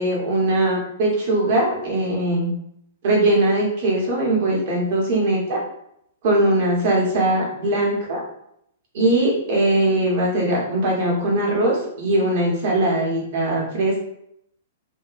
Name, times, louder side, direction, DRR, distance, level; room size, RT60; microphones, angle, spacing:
voice 1, 0.0-2.5 3.0-5.6 6.2-8.2 8.9-14.0, right 1 dB, 50° right, -3 dB, 1.0 m, -20 dB
2.7 x 2.2 x 2.5 m, 0.74 s
figure-of-eight pair, 105°, 0 cm